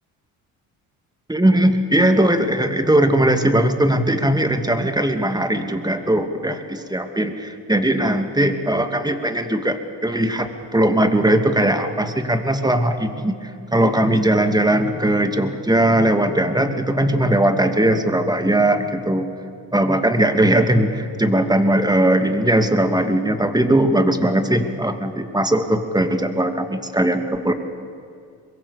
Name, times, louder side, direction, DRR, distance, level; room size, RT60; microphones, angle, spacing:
voice 1, 1.3-19.3 19.7-27.5, right 1 dB, 10° right, 7 dB, 2.6 m, -19 dB
23.5 x 22.5 x 7.2 m, 2.4 s
hypercardioid pair, 55°, 47 cm